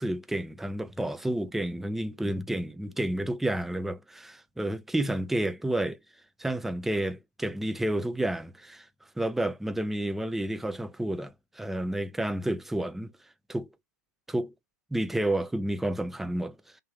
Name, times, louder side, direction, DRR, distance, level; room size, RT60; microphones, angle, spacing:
voice 1, 0.0-6.0 6.4-8.9 9.2-13.1 13.5-13.7 14.3-14.5 14.9-16.6, right 1 dB, 5° right, 0.3 m, -30 dB
3.4 x 2.5 x 3.2 m
hypercardioid pair, 110°, 10 cm